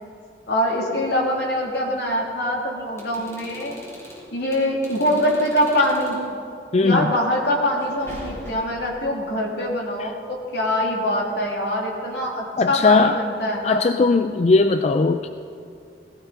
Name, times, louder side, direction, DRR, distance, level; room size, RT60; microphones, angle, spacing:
voice 1, 0.5-3.8 4.3-6.2 6.8-13.8, left 1 dB, 70° left, -2 dB, 2.8 m, -23 dB
sound 1, 2.9-6.3 7.8-8.9, equal, 15° left, 3.4 m, -41 dB
voice 2, 6.7-7.1 10.0-10.1 12.6-13.2 13.6-15.3, left 3 dB, 35° left, 9 dB, 0.3 m, -18 dB
18.0 x 15.5 x 4.0 m, 2.4 s
head